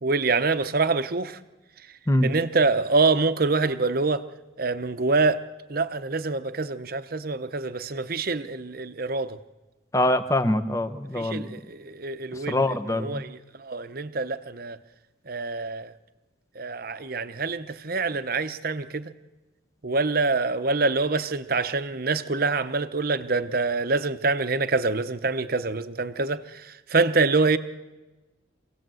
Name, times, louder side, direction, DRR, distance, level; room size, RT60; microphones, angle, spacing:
voice 1, 0.0-1.4 2.2-4.2 4.6-5.4 5.7-9.4 11.2-14.8 15.3-15.9 16.6-19.1 19.8-27.6, right 3 dB, 50° right, 0.9 m, -25 dB
voice 2, 9.9-11.6 12.5-13.2, left 1 dB, 15° left, 0.9 m, -24 dB
25.5 x 17.0 x 7.8 m
head